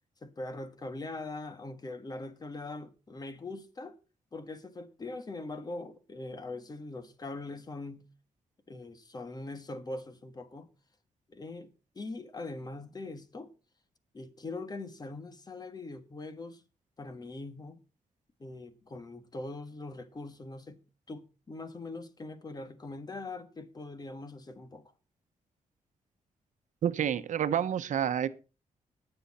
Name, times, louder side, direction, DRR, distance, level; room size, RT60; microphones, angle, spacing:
voice 1, 0.2-4.0 4.3-8.0 8.7-10.7 11.3-11.7 11.9-13.5 14.1-16.6 17.0-17.8 18.4-20.8 21.1-24.9, left 2 dB, 30° left, 1.6 m, -42 dB
voice 2, 26.8-28.3, right 9 dB, 70° right, 0.9 m, -29 dB
19.5 x 7.0 x 4.2 m
cardioid pair, 110°, 13 cm